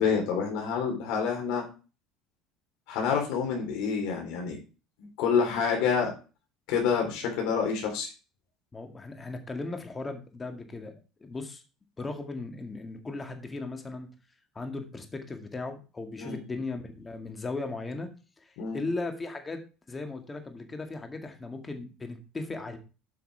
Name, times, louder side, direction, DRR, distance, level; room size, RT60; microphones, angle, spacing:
voice 1, 0.0-1.7 2.9-4.6 5.2-6.1 6.7-8.1 16.2-16.4 18.6-18.8, left 6 dB, 75° left, 1 dB, 3.7 m, -27 dB
voice 2, 8.7-11.6 12.0-14.1 14.6-18.1 18.4-19.6 19.9-22.8, left 3 dB, 20° left, 6 dB, 2.0 m, -37 dB
8.5 x 5.7 x 4.9 m, 0.33 s
supercardioid pair, 110°, 0 cm